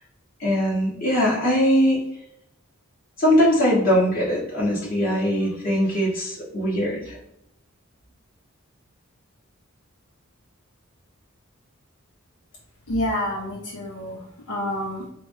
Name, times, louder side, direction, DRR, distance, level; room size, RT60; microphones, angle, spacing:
voice 1, 0.4-2.0 3.2-7.2, equal, 45° left, -6 dB, 1.4 m, -21 dB
voice 2, 12.9-15.1, left 1 dB, 85° left, -2 dB, 0.7 m, -28 dB
4.5 x 2.0 x 3.6 m, 0.79 s
head